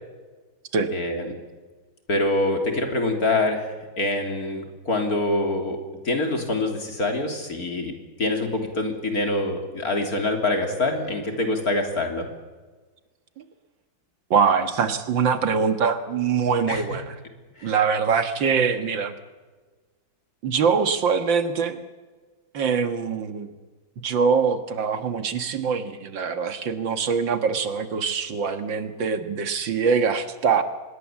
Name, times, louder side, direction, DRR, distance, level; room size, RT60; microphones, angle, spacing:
voice 1, 0.9-1.3 2.1-5.8 6.0-7.9 8.2-12.3 16.7-16.8 17.6-17.7, left 2 dB, 45° left, 3 dB, 3.8 m, -25 dB
voice 2, 14.3-17.2 17.6-19.1 20.4-21.8 22.5-23.5 24.0-30.6, right 6 dB, 70° right, 9 dB, 2.2 m, -23 dB
25.5 x 21.0 x 7.4 m, 1.3 s
omnidirectional pair, 2.1 m